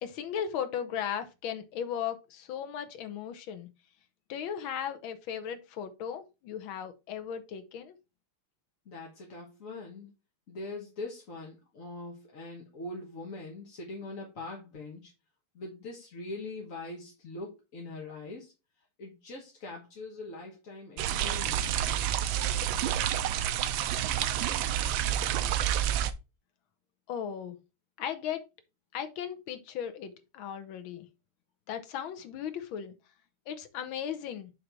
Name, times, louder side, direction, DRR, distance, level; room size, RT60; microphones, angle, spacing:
voice 1, 0.0-3.7 4.3-8.0 27.1-27.6 28.0-28.4 28.9-31.1 31.7-32.9 33.5-34.5, left 8 dB, 70° left, 1.6 m, -36 dB
voice 2, 8.8-10.1 10.5-15.1 15.5-18.5 19.0-21.9, left 2 dB, 45° left, 1.4 m, -42 dB
sound 1, 21.0-26.1, right 10 dB, 75° right, 1.2 m, -29 dB
8.0 x 3.4 x 4.4 m
omnidirectional pair, 2.4 m